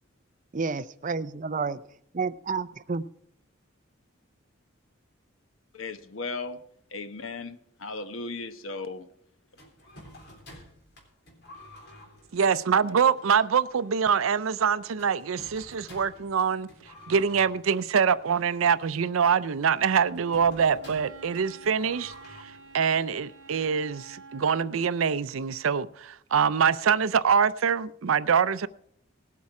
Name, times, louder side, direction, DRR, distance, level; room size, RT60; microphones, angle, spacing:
voice 1, 0.5-1.8 2.1-3.0, right 4 dB, 40° right, 0.5 m, -30 dB
voice 2, 5.7-6.6 6.9-9.1, left 3 dB, 85° left, 1.1 m, -36 dB
sound 1, 9.6-24.3, left 1 dB, 55° left, 3.5 m, -52 dB
voice 3, 12.3-16.7 17.1-22.1 22.4-28.7, right 6 dB, 90° right, 0.5 m, -24 dB
Wind instrument woodwind instrument, 20.1-24.9, right 5 dB, 65° right, 1.5 m, -48 dB
18.5 x 8.4 x 4.8 m
head